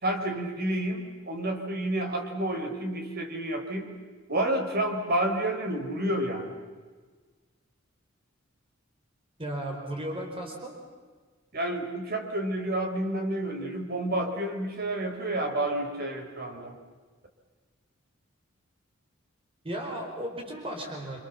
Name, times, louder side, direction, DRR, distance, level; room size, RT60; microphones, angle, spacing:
voice 1, 0.0-3.9 4.3-6.6 11.5-16.8, right 1 dB, 50° right, 4 dB, 4.3 m, -30 dB
voice 2, 9.4-10.8 19.6-21.2, right 1 dB, 30° right, 1 dB, 4.9 m, -35 dB
28.0 x 26.0 x 7.3 m, 1.5 s
head